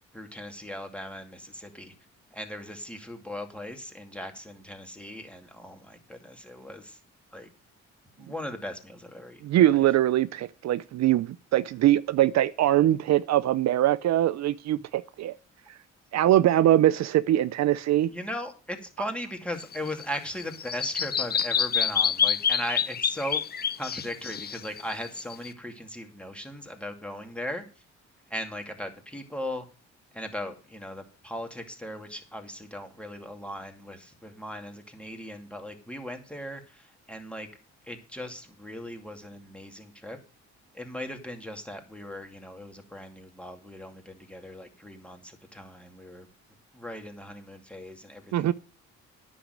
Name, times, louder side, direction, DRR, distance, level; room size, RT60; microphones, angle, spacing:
voice 1, 0.1-1.9 2.3-7.0 7.3-7.5 8.2-9.8 18.1-23.4 23.8-27.6 28.3-29.7 30.1-37.5 37.8-40.2 40.7-46.3 46.7-48.5, left 1 dB, 5° left, 2.4 m, -38 dB
voice 2, 9.4-15.4 16.1-18.1 48.3-48.5, right 13 dB, 60° right, 0.5 m, -22 dB
Bird vocalization bird call bird song, 19.6-25.5, left 7 dB, 30° left, 0.5 m, -28 dB
10.0 x 6.3 x 7.8 m
cardioid pair, 90°, 30 cm